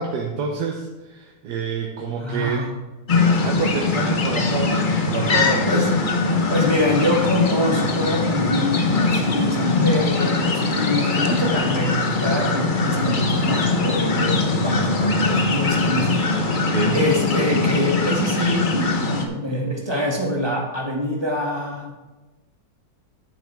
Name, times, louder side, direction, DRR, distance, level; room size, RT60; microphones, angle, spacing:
voice 1, 0.0-2.7 3.2-5.9 16.7-17.0, right 5 dB, 70° right, 1 dB, 1.4 m, -28 dB
voice 2, 2.2-2.7 5.7-5.9 6.5-16.3 16.9-21.9, equal, 15° right, -1 dB, 1.7 m, -25 dB
sound 1, 3.1-19.3, left 3 dB, 40° left, 0.8 m, -21 dB
10.5 x 9.0 x 3.4 m, 1.1 s
omnidirectional pair, 1.9 m